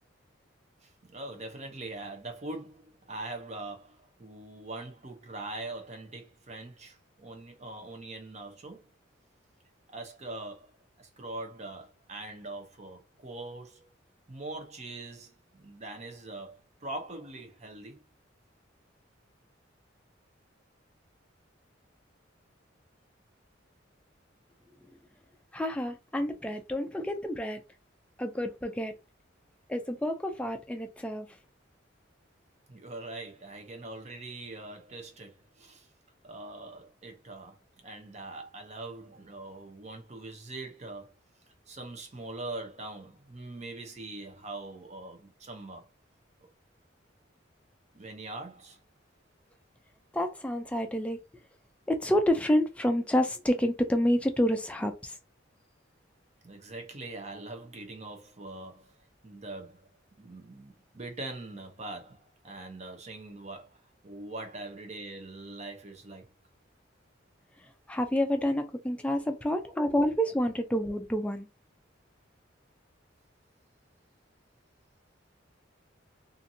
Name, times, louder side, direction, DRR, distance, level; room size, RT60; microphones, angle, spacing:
voice 1, 0.8-8.9 9.9-13.9 14.3-18.0 32.7-35.9 36.2-41.1 41.7-45.8 47.9-48.8 56.4-59.9 60.2-66.3 69.2-69.3, right 2 dB, 35° right, 0.6 m, -42 dB
voice 2, 25.5-27.6 28.2-28.9 29.7-31.3 50.1-51.2 51.9-55.2 67.9-71.5, equal, 5° left, 0.3 m, -28 dB
2.7 x 2.5 x 2.6 m
head